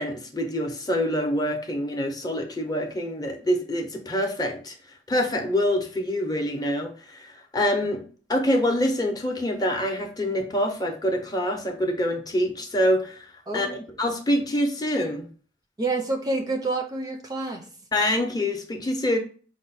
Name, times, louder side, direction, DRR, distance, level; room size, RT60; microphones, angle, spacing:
voice 1, 0.0-4.7 5.1-8.0 8.3-13.3 13.5-13.7 14.0-15.3 17.9-19.2, left 1 dB, 20° left, 3 dB, 0.6 m, -25 dB
voice 2, 13.5-13.8 15.8-17.7, right 3 dB, 20° right, 3 dB, 0.5 m, -28 dB
5.0 x 2.1 x 3.9 m, 0.40 s
head